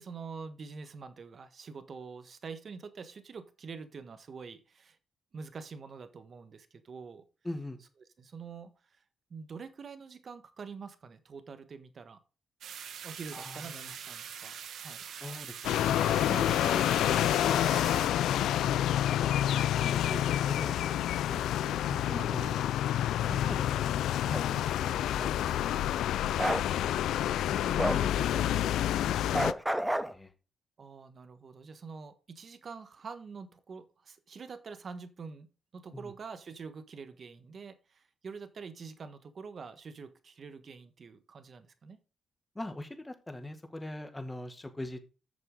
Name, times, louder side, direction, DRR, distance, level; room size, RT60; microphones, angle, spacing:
voice 1, 0.0-5.0 5.3-7.2 8.2-9.0 9.3-12.2 13.0-15.1 21.7-22.6 23.2-23.7 24.5-25.0 25.7-26.1 30.8-42.0, right 5 dB, 50° right, 10 dB, 1.4 m, -46 dB
voice 2, 7.4-7.8 13.3-13.9 15.2-17.9 18.1-21.4 21.9-22.7 23.5-23.8 24.3-24.6 27.5-30.3 35.9-36.1 42.6-45.0, left 1 dB, 15° left, 7 dB, 1.9 m, -42 dB
sound 1, 12.6-18.1, right 8 dB, 75° right, 1.2 m, -43 dB
sound 2, 15.6-29.5, left 12 dB, 85° left, 0.4 m, -28 dB
Bark, 26.4-26.6 27.8-28.0 29.3-30.1, right 1 dB, 5° right, 0.8 m, -29 dB
10.5 x 6.8 x 3.8 m, 0.33 s
cardioid pair, 85°, 0 cm